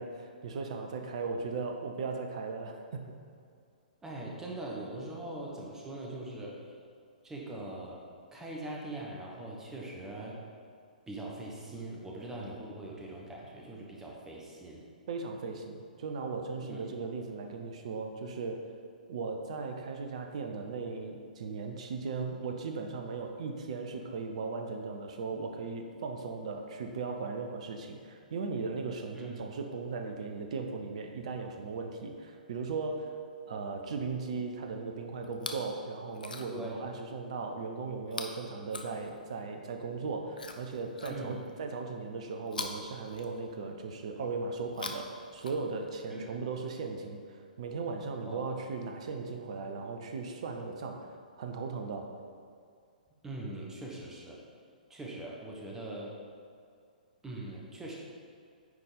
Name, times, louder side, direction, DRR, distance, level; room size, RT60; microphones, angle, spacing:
voice 1, 0.0-3.2 15.1-18.7 19.1-33.2 33.5-47.2 47.6-51.1 51.4-52.1, right 4 dB, 45° right, 4 dB, 0.9 m, -37 dB
voice 2, 4.0-6.7 7.2-8.0 8.3-10.4 11.1-14.8 16.6-16.9 29.1-29.4 36.5-36.8 41.1-41.4 46.1-46.4 48.3-48.5 53.2-54.4 54.9-56.2 57.2-58.0, right 1 dB, 10° right, -3 dB, 1.2 m, -42 dB
Chewing mastication, 35.2-35.7 36.1-36.7 38.1-39.4 40.3-41.6 42.5-43.7 44.6-46.0 46.9-47.0, left 3 dB, 70° left, 0.8 m, -43 dB
9.6 x 4.3 x 5.1 m, 2.3 s
figure-of-eight pair, 120°, 5 cm